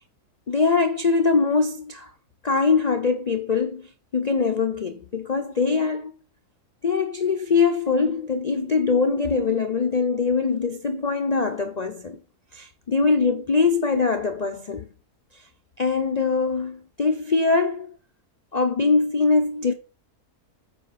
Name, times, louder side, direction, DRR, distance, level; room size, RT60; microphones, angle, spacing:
voice 1, 0.5-2.1 2.4-3.9 4.1-6.1 6.8-12.2 12.5-14.8 15.8-17.9 18.5-19.7, left 4 dB, 85° left, 0.3 m, -22 dB
7.9 x 4.9 x 5.7 m
omnidirectional pair, 1.7 m